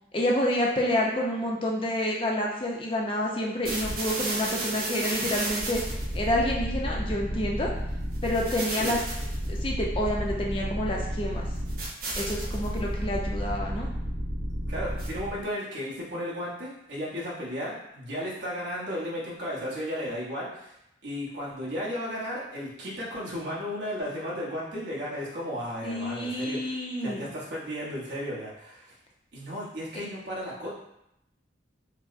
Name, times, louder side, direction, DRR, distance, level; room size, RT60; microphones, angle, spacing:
voice 1, 0.1-5.8 6.1-7.7 8.2-9.0 9.5-11.5 12.2-13.9 25.8-27.2, left 1 dB, 30° left, -2 dB, 0.5 m, -28 dB
sound 1, 3.6-15.4, right 1 dB, 50° right, 0.8 m, -32 dB
voice 2, 14.7-20.7 21.0-28.9 29.3-30.7, equal, 70° right, -6 dB, 1.1 m, -34 dB
4.6 x 2.0 x 2.5 m, 0.81 s
head